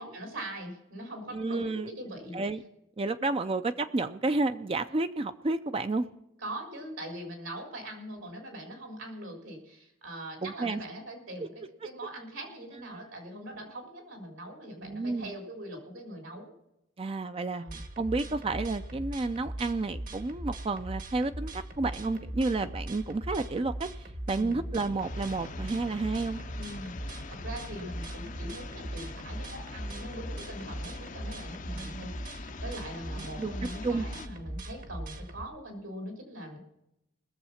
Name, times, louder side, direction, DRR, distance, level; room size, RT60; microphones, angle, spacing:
voice 1, 0.0-2.4 6.4-16.5 17.6-17.8 24.3-24.6 26.5-26.9 27.3-36.6, right 1 dB, 80° right, 3 dB, 4.0 m, -42 dB
voice 2, 1.3-1.9 2.3-2.6 3.0-6.1 10.4-10.8 13.4-13.7 14.8-15.3 17.0-17.6 18.0-26.4 31.7-32.1 33.2-33.5 33.8-34.1, right 3 dB, 30° right, 10 dB, 0.4 m, -31 dB
sound 1, 17.7-35.5, right 1 dB, 45° right, 1.2 m, -40 dB
sound 2, 25.0-34.3, left 5 dB, 40° left, 0.6 m, -45 dB
20.0 x 7.2 x 5.7 m, 0.84 s
head